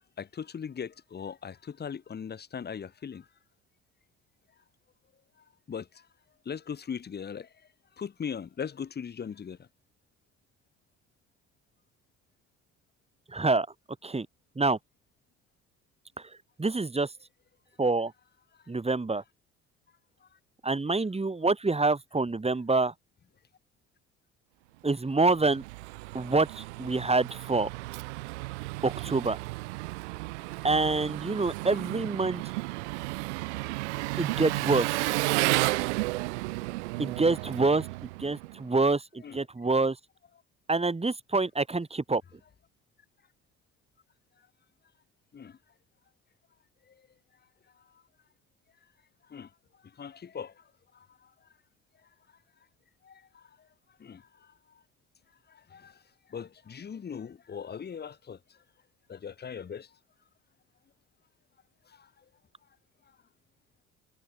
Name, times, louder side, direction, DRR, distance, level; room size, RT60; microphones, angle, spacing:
voice 1, 0.0-3.3 5.7-6.0 6.4-7.5 8.0-9.7 39.2-39.4 45.3-45.6 49.3-49.5 50.0-50.5 50.9-51.1 53.0-53.4 54.0-54.3 55.5-56.0 56.3-58.4 59.1-59.9 61.9-62.1, left 7 dB, 30° left, 1.0 m, -39 dB
voice 2, 13.3-13.7 14.0-14.3 14.6-14.8 16.2-16.3 16.6-17.1 17.8-18.1 18.7-19.2 20.6-22.9 24.8-25.6 26.1-27.7 28.8-29.4 30.6-32.4 34.2-35.1 37.0-40.0 40.7-42.2, right 3 dB, 15° right, 2.3 m, -26 dB
Engine, 25.1-38.7, right 23 dB, 80° right, 0.6 m, -33 dB
hypercardioid pair, 55°, 35 cm